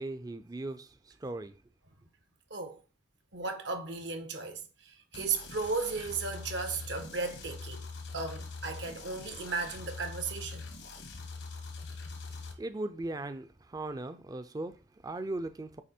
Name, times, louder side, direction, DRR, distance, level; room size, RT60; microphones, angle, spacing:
voice 1, 0.0-1.5 12.6-15.8, right 2 dB, 20° right, 0.4 m, -38 dB
voice 2, 3.3-7.9 8.1-10.7, right 4 dB, 75° right, 1.2 m, -35 dB
sound 1, 5.1-12.5, left 3 dB, 90° left, 1.3 m, -43 dB
8.4 x 3.0 x 4.3 m
head